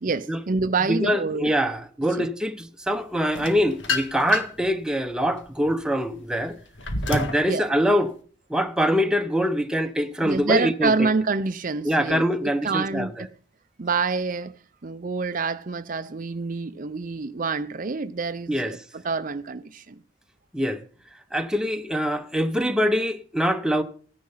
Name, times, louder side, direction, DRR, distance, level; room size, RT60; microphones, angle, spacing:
voice 1, 0.0-1.5 2.2-2.3 7.5-7.7 10.2-13.1 13.8-14.5 14.8-20.0, right 4 dB, 45° right, 0.6 m, -27 dB
voice 2, 0.9-6.6 7.1-8.1 8.5-11.1 11.8-13.1 18.5-18.7 20.5-20.8 21.3-23.8, equal, 5° right, 1.0 m, -24 dB
sound 1, 3.3-4.7 5.2-7.5, left 3 dB, 70° left, 1.8 m, -29 dB
15.0 x 10.5 x 5.7 m
head